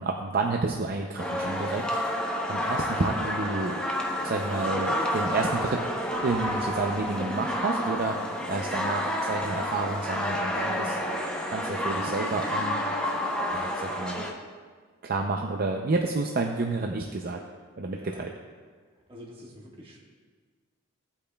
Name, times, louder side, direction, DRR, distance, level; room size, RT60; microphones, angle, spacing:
voice 1, 0.0-2.1 2.5-3.8 4.2-5.9 6.2-11.0 11.5-12.8 13.5-14.2 15.0-17.4 17.8-18.3, right 3 dB, 45° right, 2 dB, 0.5 m, -30 dB
sound 1, 1.2-14.3, equal, 5° left, 0.8 m, -30 dB
voice 2, 5.0-5.3 17.9-18.2 19.1-20.0, equal, 25° right, -3 dB, 1.5 m, -44 dB
16.0 x 8.5 x 2.3 m, 1.5 s
head